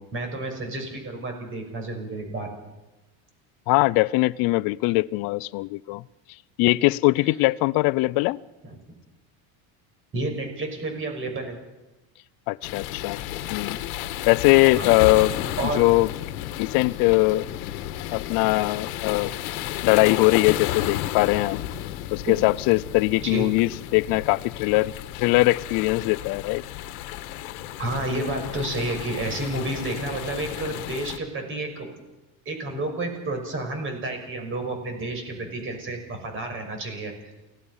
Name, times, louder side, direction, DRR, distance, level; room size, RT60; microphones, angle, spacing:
voice 1, 0.1-2.5 10.1-11.6 14.7-15.3 15.6-15.8 22.3-22.4 23.2-23.5 27.1-27.2 27.8-31.9 32.5-37.1, right 2 dB, 30° right, 6.0 m, -30 dB
voice 2, 3.7-6.0 6.6-8.4 12.5-13.2 13.5-13.8 14.3-15.3 15.8-16.1 16.6-17.5 18.1-19.3 19.8-21.7 22.1-26.6, left 21 dB, 50° left, 0.7 m, -21 dB
sound 1, 12.6-31.2, left 13 dB, 75° left, 1.6 m, -32 dB
29.0 x 17.5 x 5.7 m
supercardioid pair, 140°, 44 cm